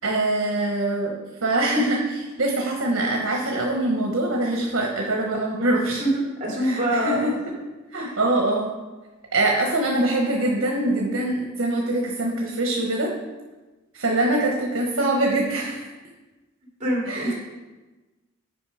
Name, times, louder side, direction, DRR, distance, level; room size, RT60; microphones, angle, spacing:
voice 1, 0.0-6.0 6.6-7.3 7.9-8.7 9.3-13.1 13.9-15.8 17.1-17.3, right 2 dB, 75° right, 0 dB, 1.2 m, -23 dB
voice 2, 5.8-7.3 7.9-8.2 16.8-17.3, right 1 dB, 35° right, -4 dB, 2.8 m, -25 dB
9.4 x 5.2 x 5.0 m, 1.2 s
head